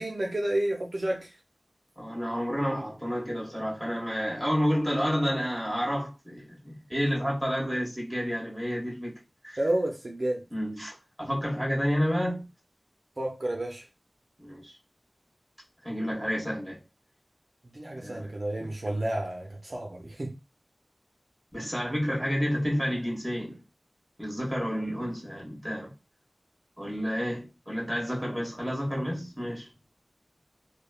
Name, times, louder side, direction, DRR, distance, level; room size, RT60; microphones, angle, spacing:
voice 1, 0.0-1.3 9.6-10.4 13.2-13.9 17.7-20.4, right 1 dB, 55° right, 0.5 m, -30 dB
voice 2, 2.0-9.2 9.4-9.6 10.5-12.5 14.4-14.8 15.8-16.8 17.9-18.3 18.6-18.7 21.5-23.6 24.2-25.9 26.8-29.7, equal, 5° right, 1.4 m, -30 dB
3.1 x 2.1 x 2.3 m
wide cardioid pair, 60°, 0 cm